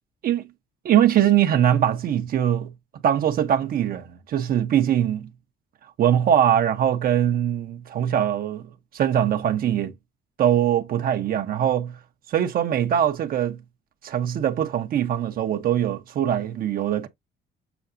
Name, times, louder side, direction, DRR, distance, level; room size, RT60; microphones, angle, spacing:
voice 1, 0.8-2.7 3.0-5.3 6.0-8.7 8.9-9.9 10.4-12.0 12.3-13.6 14.0-17.1, right 10 dB, 45° right, 0.8 m, -22 dB
7.0 x 5.8 x 2.6 m
cardioid pair, 175°, 20 cm